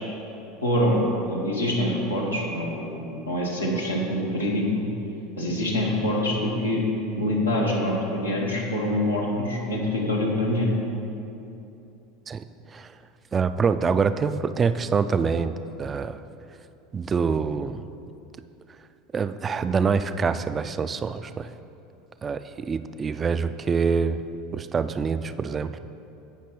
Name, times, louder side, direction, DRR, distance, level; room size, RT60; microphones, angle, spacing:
voice 1, 0.6-4.6 5.4-6.8 7.2-10.7, left 1 dB, 85° left, -3 dB, 1.6 m, -25 dB
voice 2, 13.3-16.2 16.9-17.8 19.1-21.5 22.2-24.2 24.5-25.8, right 5 dB, 25° right, 11 dB, 0.4 m, -25 dB
16.5 x 5.9 x 3.1 m, 2.8 s
figure-of-eight pair, 75°, 0 cm